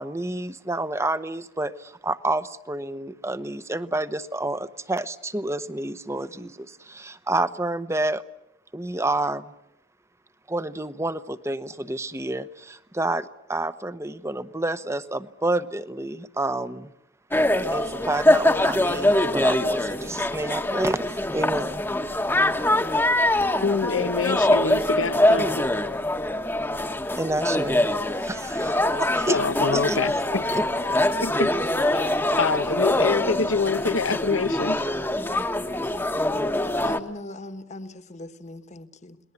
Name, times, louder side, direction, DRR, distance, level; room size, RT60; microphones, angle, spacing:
voice 1, 0.0-8.2 8.7-9.5 10.5-16.9 17.7-21.8 27.2-27.9 28.2-29.4 29.7-30.0 30.5-30.6 31.0-31.1, right 2 dB, 15° right, 0.9 m, -29 dB
sound 1, 17.3-37.0, left 1 dB, 10° left, 1.2 m, -23 dB
voice 2, 23.6-25.7 29.3-30.4 31.2-31.5 31.9-32.1 32.4-34.8, left 4 dB, 85° left, 1.0 m, -26 dB
voice 3, 36.7-39.2, left 2 dB, 35° left, 1.5 m, -40 dB
30.0 x 20.5 x 8.1 m
head